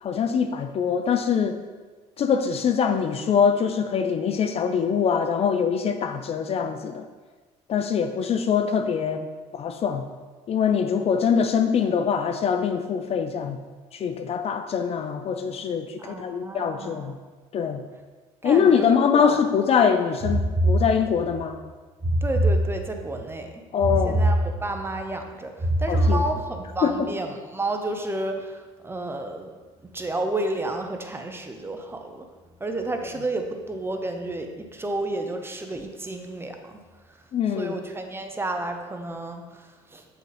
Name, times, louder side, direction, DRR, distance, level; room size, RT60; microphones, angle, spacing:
voice 1, 0.0-1.6 2.2-7.0 7.7-9.3 9.5-10.1 10.5-13.6 13.9-17.2 17.5-17.8 18.4-21.6 23.7-24.1 25.9-26.2 26.8-27.1 37.3-37.7, left 7 dB, 45° left, 7 dB, 0.5 m, -23 dB
voice 2, 16.0-17.1 18.4-19.4 22.2-23.7 24.0-29.5 29.8-32.3 32.6-40.1, right 2 dB, 15° right, 5 dB, 0.7 m, -31 dB
sound 1, 20.2-21.4 22.0-23.2 23.8-25.0 25.6-26.7, right 1 dB, 35° right, 1.4 m, -23 dB
7.5 x 4.0 x 3.3 m, 1.4 s
supercardioid pair, 80°, 14 cm